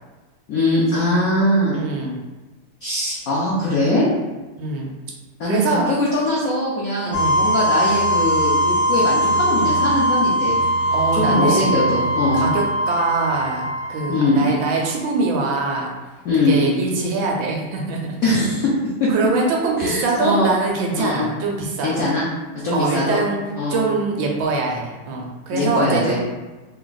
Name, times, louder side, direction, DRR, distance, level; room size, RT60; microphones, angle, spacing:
voice 1, 0.5-1.8 2.8-4.1 5.4-10.6 11.3-12.4 14.1-14.5 16.2-16.6 18.2-19.1 19.8-20.6 21.0-21.2 21.8-22.2 22.6-23.2 23.6-23.8 25.5-26.2, left 1 dB, 85° left, -6 dB, 0.7 m, -21 dB
voice 2, 1.7-2.2 4.6-4.9 5.5-5.9 7.1-7.4 10.9-11.8 12.3-15.9 16.3-18.2 19.1-22.1 22.7-23.4 23.7-26.2, right 3 dB, 75° right, -1 dB, 1.3 m, -23 dB
sound 1, 7.1-14.9, equal, 60° left, 1.5 m, -21 dB
3.4 x 2.4 x 3.8 m, 1.2 s
omnidirectional pair, 2.3 m